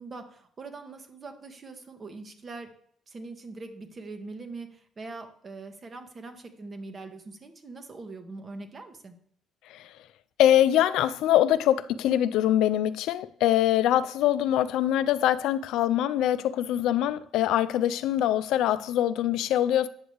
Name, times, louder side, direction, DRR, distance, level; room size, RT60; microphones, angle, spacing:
voice 1, 0.0-2.8 3.1-9.2, right 3 dB, 40° right, 1.3 m, -42 dB
voice 2, 10.4-19.9, left 12 dB, 75° left, 0.3 m, -23 dB
8.7 x 6.2 x 3.4 m
hypercardioid pair, 55°, 0 cm